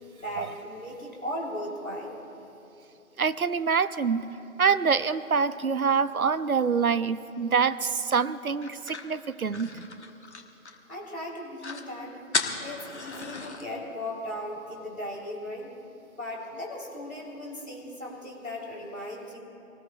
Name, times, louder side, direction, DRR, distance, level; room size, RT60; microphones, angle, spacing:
voice 1, 0.2-2.2 10.9-12.2 12.6-15.7 16.1-19.4, left 1 dB, 75° left, -3 dB, 3.5 m, -37 dB
voice 2, 3.2-4.3 4.6-9.8, right 6 dB, 80° right, 15 dB, 0.7 m, -25 dB
sound 1, 8.6-11.0 11.3-11.4 11.6-11.9 12.3-13.6, left 3 dB, 50° left, 1.2 m, -34 dB
25.5 x 19.5 x 2.3 m, 2.8 s
figure-of-eight pair, 155°, 43 cm